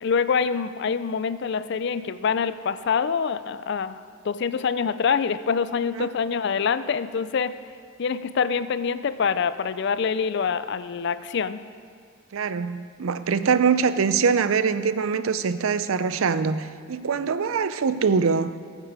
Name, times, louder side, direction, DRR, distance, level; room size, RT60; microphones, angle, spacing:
voice 1, 0.0-7.5 8.0-11.6, left 6 dB, 55° left, 14 dB, 0.4 m, -25 dB
voice 2, 12.3-18.5, right 5 dB, 80° right, 13 dB, 0.5 m, -23 dB
15.0 x 7.5 x 4.8 m, 2.3 s
head